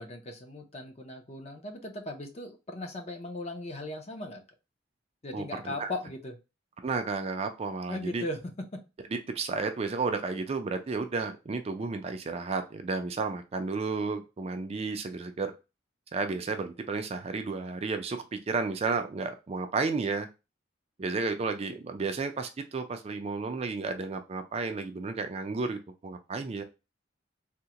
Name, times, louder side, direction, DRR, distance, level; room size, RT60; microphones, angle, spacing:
voice 1, 0.0-4.4 5.2-6.4 7.9-8.8, left 2 dB, 35° left, 3 dB, 0.6 m, -38 dB
voice 2, 5.3-5.9 6.8-8.2 9.1-15.5 16.1-20.3 21.0-26.6, right 4 dB, 35° right, 6 dB, 0.4 m, -32 dB
3.6 x 2.1 x 2.8 m, 0.27 s
head